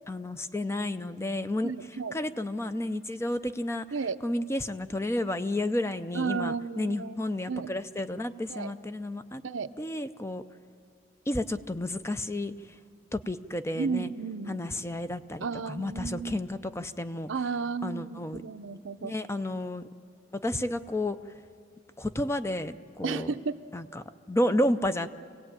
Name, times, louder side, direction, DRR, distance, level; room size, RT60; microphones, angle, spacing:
voice 1, 0.1-1.7 2.1-3.9 4.2-9.4 9.8-10.4 11.3-12.8 13.1-14.1 14.5-17.3 17.8-18.4 19.0-19.8 20.3-21.2 22.0-23.4 23.7-25.1, left 1 dB, 15° left, 11 dB, 0.6 m, -31 dB
voice 2, 1.6-2.2 3.9-4.2 6.1-7.2 7.5-7.7 8.5-8.7 9.4-9.7 13.8-14.7 15.4-16.5 17.3-19.2 23.0-23.6, right 5 dB, 70° right, 10 dB, 0.7 m, -33 dB
26.0 x 17.5 x 8.9 m, 2.2 s
head